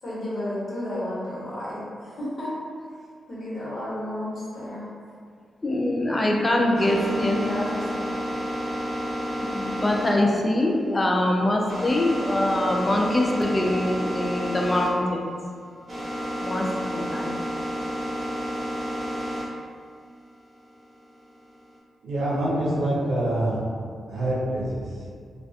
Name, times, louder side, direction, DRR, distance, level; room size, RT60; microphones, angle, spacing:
voice 1, 0.0-2.5 2.9-3.0 3.3-4.9 6.4-8.2, left 1 dB, 55° left, -9 dB, 1.0 m, -32 dB
voice 2, 5.6-7.4 9.4-15.3 16.4-17.3, left 1 dB, 30° left, 0 dB, 0.3 m, -23 dB
sound 1, 6.8-14.9 15.2-19.5 19.9-21.7, equal, 55° right, 0.8 m, -31 dB
voice 3, 22.0-23.6 24.1-24.9, right 1 dB, 85° right, -7 dB, 0.6 m, -25 dB
2.4 x 2.2 x 2.4 m, 2.2 s
cardioid pair, 65°, 0 cm